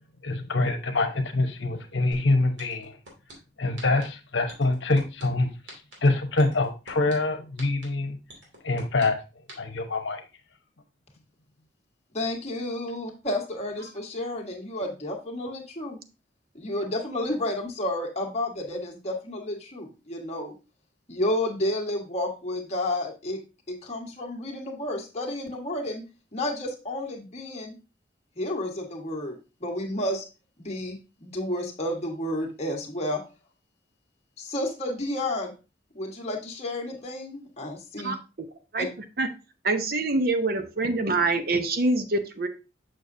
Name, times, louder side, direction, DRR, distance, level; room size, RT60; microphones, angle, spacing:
voice 1, 0.2-3.0 3.6-5.5 6.0-8.2 8.6-9.2 9.6-10.2, left 2 dB, 80° left, 6 dB, 1.0 m, -25 dB
sound 1, 2.1-2.2 2.6-3.3 3.8-4.0 4.5-5.2 5.7-5.9 6.4-7.1 7.6-7.8 8.3-9.1 9.5-9.6, right 2 dB, 80° right, 2.6 m, -43 dB
voice 2, 12.1-16.0 16.5-20.5 21.1-23.4 23.7-26.0 26.3-27.8 28.4-30.2 30.6-33.2 34.4-35.5 35.9-38.1 38.8-38.9, left 1 dB, 35° left, 1 dB, 1.4 m, -31 dB
voice 3, 39.6-42.5, right 2 dB, 50° right, 8 dB, 0.7 m, -25 dB
6.6 x 6.1 x 2.6 m, 0.30 s
head